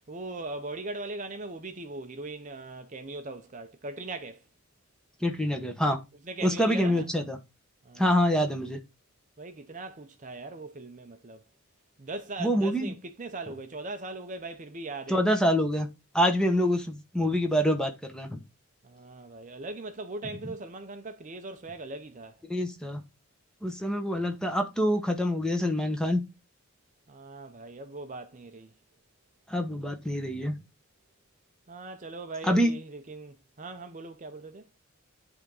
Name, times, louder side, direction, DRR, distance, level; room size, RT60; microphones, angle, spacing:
voice 1, 0.0-4.4 6.2-7.0 7.8-8.2 9.4-11.4 12.0-15.2 18.8-22.4 27.1-28.7 31.7-34.7, right 2 dB, 35° right, 0.6 m, -40 dB
voice 2, 5.2-6.0 6.4-7.4 8.0-8.8 12.4-12.9 15.1-15.9 16.1-18.4 22.5-23.0 23.6-26.2 29.5-30.5 32.4-32.7, equal, 5° left, 1.0 m, -26 dB
10.5 x 3.5 x 3.9 m
head